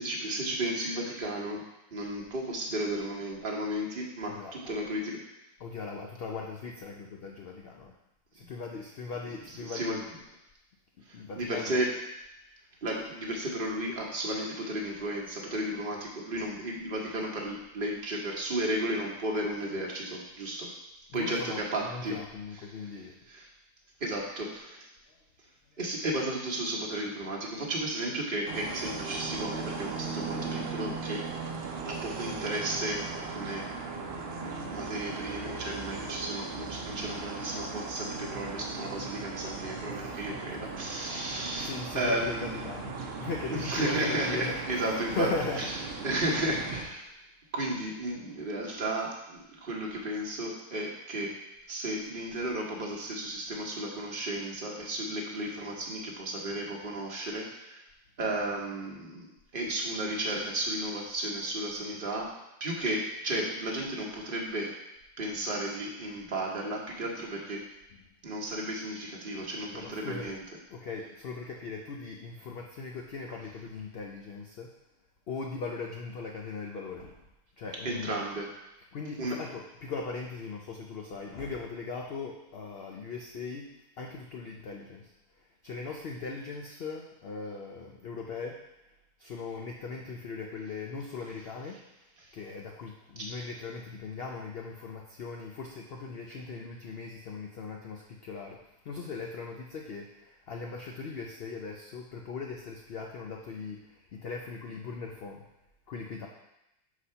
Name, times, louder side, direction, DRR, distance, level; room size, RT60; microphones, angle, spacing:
voice 1, 0.0-1.6 1.9-5.2 9.6-10.0 11.1-11.9 12.8-20.7 21.1-22.2 23.3-23.5 24.0-24.9 25.8-31.2 31.8-33.7 34.7-42.6 43.5-45.3 45.6-45.7 46.0-47.1 47.5-51.3 51.7-57.8 58.2-59.3 59.5-62.3 62.6-64.7 65.2-67.6 68.2-70.4 77.8-78.5 79.2-79.4 93.2-93.3, right 1 dB, 35° right, -2 dB, 1.1 m, -33 dB
voice 2, 4.2-4.7 5.6-7.9 8.3-10.2 11.0-11.9 21.1-23.2 39.9-40.7 41.2-45.9 47.1-47.2 67.9-68.0 69.7-70.4 70.7-74.7 75.3-77.2 77.6-78.2 78.9-85.1 85.4-88.6 89.2-91.8 92.3-105.4 105.9-106.3, left 4 dB, 75° left, 1 dB, 0.5 m, -39 dB
sound 1, 28.5-46.8, right 4 dB, 55° right, 0.7 m, -38 dB
5.0 x 4.1 x 5.5 m, 0.88 s
omnidirectional pair, 1.7 m